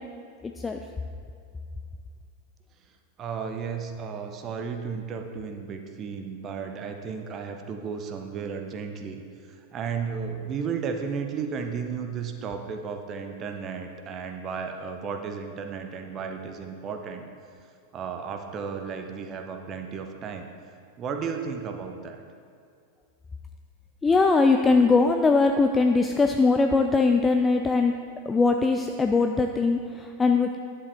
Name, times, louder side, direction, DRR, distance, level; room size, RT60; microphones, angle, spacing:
voice 1, 0.4-0.8 24.0-27.9 28.3-30.6, left 3 dB, 15° left, 5 dB, 0.4 m, -21 dB
voice 2, 3.2-9.2 9.7-17.3 17.9-20.5 21.0-22.2, right 6 dB, 30° right, 5 dB, 0.7 m, -34 dB
11.0 x 7.7 x 3.4 m, 2.3 s
figure-of-eight pair, 90°, 0 cm